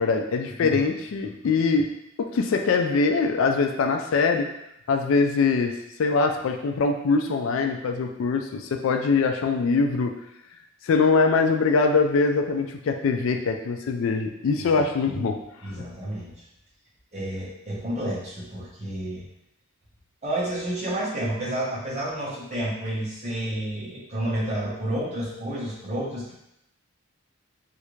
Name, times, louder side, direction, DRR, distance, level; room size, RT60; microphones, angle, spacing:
voice 1, 0.0-1.9 2.2-4.5 4.9-5.7 6.0-10.1 10.8-15.3, left 4 dB, 65° left, 5 dB, 0.3 m, -23 dB
voice 2, 14.7-15.2 15.6-16.3 17.1-19.2 20.2-26.3, right 1 dB, 30° right, -5 dB, 0.9 m, -30 dB
3.2 x 2.5 x 3.0 m, 0.83 s
head